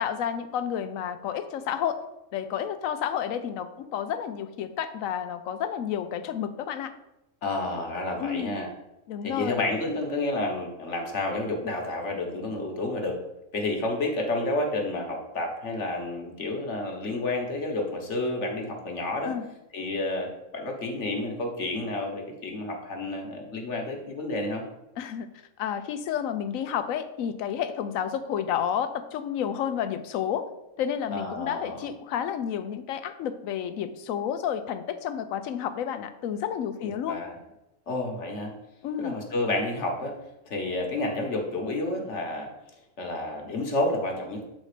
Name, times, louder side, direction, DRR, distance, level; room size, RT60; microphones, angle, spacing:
voice 1, 0.0-2.0 2.3-6.9 8.2-8.5 9.1-9.6 19.2-19.4 25.0-25.3 25.6-30.5 30.8-37.2 38.8-39.2, left 9 dB, 80° left, 11 dB, 1.0 m, -30 dB
voice 2, 7.4-8.7 9.2-13.2 13.5-19.3 19.7-24.6 31.1-31.9 36.8-37.4 37.9-38.5 39.0-40.2 40.5-42.5 43.0-44.4, left 2 dB, 60° left, 2 dB, 1.4 m, -30 dB
7.6 x 4.1 x 4.9 m, 0.90 s
omnidirectional pair, 1.4 m